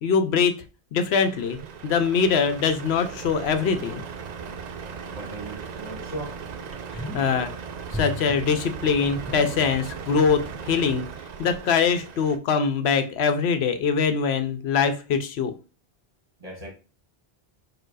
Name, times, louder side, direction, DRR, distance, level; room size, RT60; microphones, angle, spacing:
voice 1, 0.0-0.6 0.9-1.6 1.8-4.0 6.9-7.5 7.9-11.1 11.4-15.5, left 6 dB, 85° left, 0.9 m, -23 dB
Truck, 1.2-12.4, right 6 dB, 55° right, 0.5 m, -38 dB
voice 2, 5.1-6.4 16.4-16.7, right 2 dB, 35° right, 1.2 m, -37 dB
sound 1, 5.6-5.7 6.2-6.3 6.7-7.5 7.9-10.1 10.4-10.5, left 1 dB, 10° left, 1.0 m, -36 dB
4.5 x 2.4 x 4.7 m
omnidirectional pair, 1.1 m